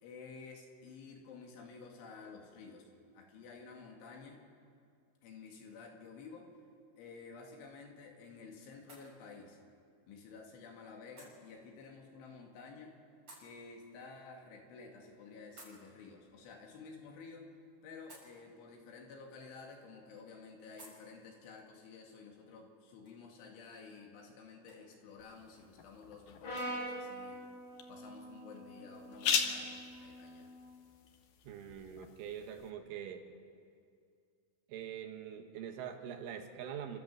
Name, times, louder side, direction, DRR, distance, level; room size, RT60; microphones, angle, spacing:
voice 1, 0.0-2.9 3.1-4.4 5.2-6.5 7.0-9.6 10.1-13.0 13.4-17.5 17.8-27.4 27.9-30.5, left 4 dB, 70° left, 1 dB, 4.5 m, -52 dB
sound 1, 7.2-26.7, right 1 dB, 20° right, 6.3 m, -64 dB
sound 2, 25.2-32.7, left 6 dB, 90° left, 1.8 m, -41 dB
Brass instrument, 26.4-30.7, right 1 dB, 45° left, 8.6 m, -45 dB
voice 2, 31.5-33.2 34.7-37.0, right 8 dB, 75° right, 5 dB, 3.8 m, -44 dB
30.0 x 13.5 x 7.5 m, 2.3 s
omnidirectional pair, 5.8 m